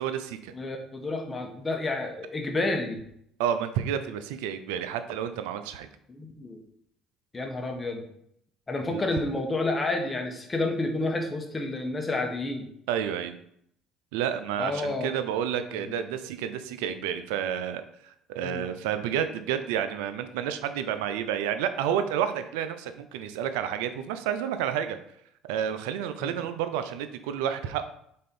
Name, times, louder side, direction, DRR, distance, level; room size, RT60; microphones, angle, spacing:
voice 1, 0.0-0.5 3.4-5.9 8.9-9.0 12.9-13.4 14.1-25.0 25.4-27.9, right 9 dB, 85° right, 10 dB, 0.5 m, -30 dB
voice 2, 0.5-3.0 6.1-6.6 7.3-8.1 8.7-12.7 14.6-15.1 15.7-15.9 18.4-18.6 26.2-26.3, left 2 dB, 25° left, 4 dB, 1.3 m, -30 dB
4.3 x 4.2 x 5.2 m, 0.71 s
supercardioid pair, 75°, 0 cm